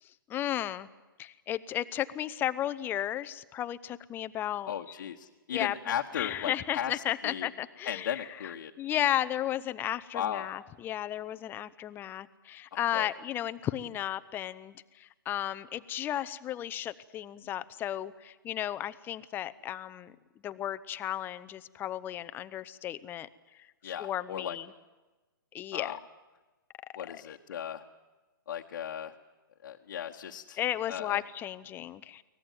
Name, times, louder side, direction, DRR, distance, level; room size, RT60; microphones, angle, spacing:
voice 1, 0.0-0.9 1.2-4.7 5.5-20.1 20.4-23.3 23.5-24.7 25.5-26.0 27.1-27.2 30.6-32.2, left 12 dB, 15° left, 13 dB, 0.7 m, -34 dB
voice 2, 4.7-7.5 7.8-8.7 10.1-10.5 12.9-13.1 23.8-24.6 25.7-26.0 26.9-27.8 28.5-29.1 29.6-30.6 30.9-31.2, left 9 dB, 60° left, 1 dB, 1.3 m, -36 dB
23.5 x 18.5 x 9.4 m, 1.2 s
hypercardioid pair, 145°, 12 cm